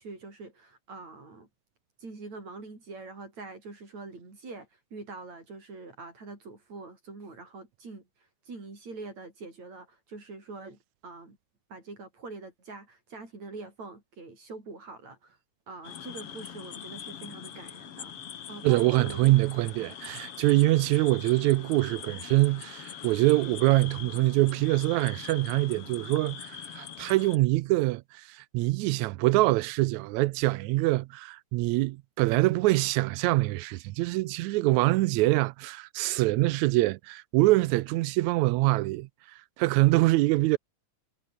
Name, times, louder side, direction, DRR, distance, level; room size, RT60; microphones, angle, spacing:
voice 1, 0.0-1.5 2.0-8.1 8.5-11.4 11.7-15.4 15.7-19.4, right 3 dB, 55° right, 7.9 m, -44 dB
sound 1, 15.8-27.4, left 9 dB, 50° left, 2.3 m, -43 dB
voice 2, 18.6-39.1 39.6-40.6, right 19 dB, 80° right, 1.8 m, -24 dB
omnidirectional pair, 3.7 m